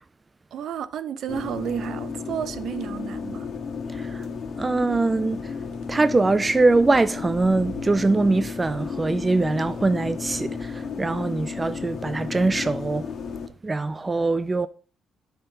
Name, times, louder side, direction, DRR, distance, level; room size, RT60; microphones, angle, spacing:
voice 1, 0.5-3.5, right 9 dB, 60° right, 0.6 m, -32 dB
sound 1, 1.3-13.5, left 5 dB, 50° left, 1.7 m, -33 dB
voice 2, 3.9-4.3 4.6-5.6 5.9-13.1 13.6-14.7, right 3 dB, 15° right, 0.3 m, -22 dB
sound 2, 5.7-5.9 6.4-8.0, right 6 dB, 80° right, 1.3 m, -46 dB
11.5 x 5.7 x 3.9 m
cardioid pair, 145°, 0 cm